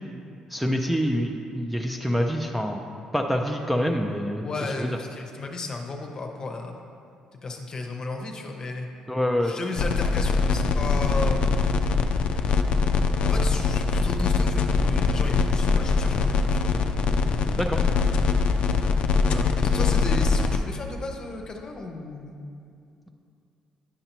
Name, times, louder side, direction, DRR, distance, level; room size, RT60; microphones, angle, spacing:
voice 1, 0.5-2.8 3.1-4.5 4.8-5.0 9.1-9.5 17.5-17.8, equal, ahead, 2 dB, 0.4 m, -26 dB
voice 2, 4.4-6.7 7.4-8.9 9.4-11.4 13.2-16.7 19.1-22.4, left 3 dB, 35° left, 2 dB, 0.8 m, -34 dB
sound 1, 9.8-20.6, left 4 dB, 60° left, 0.4 m, -22 dB
9.7 x 5.4 x 3.0 m, 2.4 s
cardioid pair, 115°, 2 cm